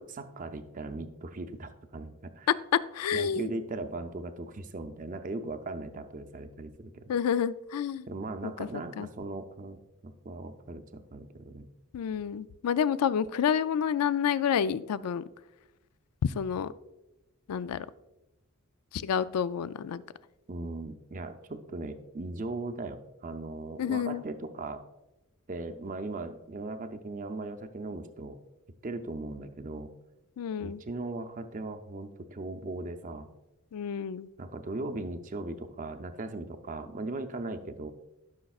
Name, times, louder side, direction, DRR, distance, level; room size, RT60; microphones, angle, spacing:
voice 1, 0.0-2.5 3.1-7.1 8.1-11.7 20.5-24.8 25.5-28.4 28.8-29.9 30.6-33.3 34.4-37.9, right 2 dB, 35° right, 8 dB, 0.5 m, -38 dB
voice 2, 2.9-3.5 7.1-8.1 8.4-8.7 9.0-9.1 11.9-15.2 16.2-16.7 17.5-17.9 18.9-20.0 23.8-24.2 30.4-30.8 33.7-34.3, left 8 dB, 85° left, 16 dB, 0.4 m, -29 dB
14.0 x 6.4 x 2.4 m, 0.98 s
head